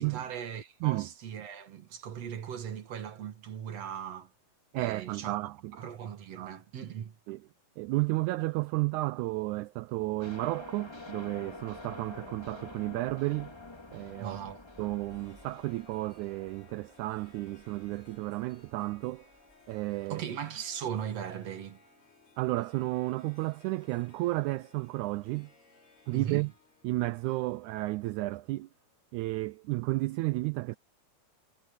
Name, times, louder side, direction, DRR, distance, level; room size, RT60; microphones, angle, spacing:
voice 1, 0.0-4.3 4.8-5.4 5.8-7.2 14.2-14.6 20.1-21.8 26.1-26.5, right 9 dB, 55° right, 2.6 m, -38 dB
voice 2, 4.7-5.7 6.4-6.6 7.3-7.4 7.8-13.5 13.9-14.4 14.8-19.3 19.7-20.2 22.4-25.5 26.1-26.5 26.8-28.7 29.1-30.8, right 20 dB, 80° right, 1.8 m, -32 dB
sound 1, 10.2-19.8, left 3 dB, 15° left, 1.1 m, -49 dB
Harp, 14.8-29.3, left 4 dB, 55° left, 7.2 m, -62 dB
omnidirectional pair, 3.8 m